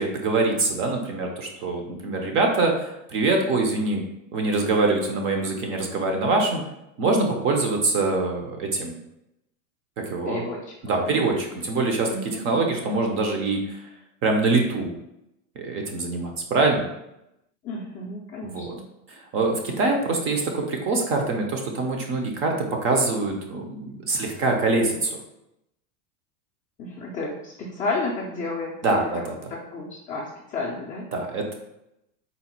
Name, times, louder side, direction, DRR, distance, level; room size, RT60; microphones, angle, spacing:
voice 1, 0.0-4.0 4.3-6.6 7.0-9.0 10.0-10.4 10.9-13.8 14.2-14.9 15.6-16.8 18.5-18.7 19.3-22.5 22.8-25.2 28.8-29.4 31.1-31.5, right 3 dB, 30° right, 3 dB, 0.5 m, -24 dB
voice 2, 10.2-11.4 12.1-12.7 17.6-18.8 26.8-29.2 29.5-31.1, left 3 dB, 20° left, -5 dB, 0.4 m, -32 dB
4.0 x 2.1 x 4.3 m, 0.85 s
supercardioid pair, 135°, 43 cm